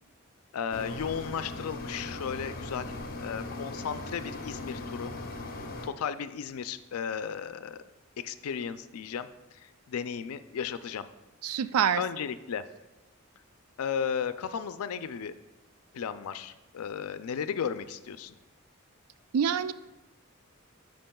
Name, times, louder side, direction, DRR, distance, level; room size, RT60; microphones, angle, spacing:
voice 1, 0.5-5.1 5.8-7.8 8.2-9.3 9.6-11.1 11.5-11.6 12.0-12.6 13.8-15.3 15.9-18.3, left 7 dB, 90° left, 12 dB, 0.4 m, -35 dB
sound 1, 0.7-5.9, left 2 dB, 40° left, 0.7 m, -39 dB
voice 2, 11.4-12.0 19.3-19.7, right 8 dB, 90° right, 15 dB, 0.3 m, -26 dB
13.0 x 5.3 x 2.3 m, 1.0 s
head